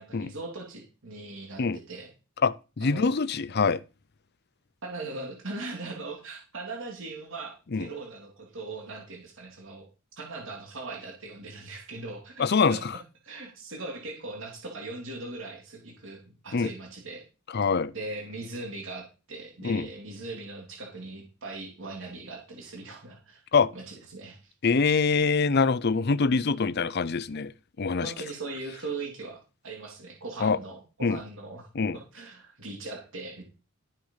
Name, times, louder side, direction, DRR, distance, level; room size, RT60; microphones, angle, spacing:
voice 1, 0.0-2.1 2.8-3.1 4.8-9.9 10.2-12.8 13.2-17.2 17.9-23.4 23.7-24.5 28.0-33.4, right 3 dB, 60° right, 3.3 m, -40 dB
voice 2, 2.4-3.8 7.7-7.9 12.4-12.8 16.5-16.7 17.5-17.9 19.6-19.9 23.5-23.7 24.6-27.5 27.8-28.1 30.4-30.6 31.0-31.2 31.8-32.0, left 4 dB, 50° left, 0.6 m, -24 dB
13.5 x 6.0 x 5.7 m
head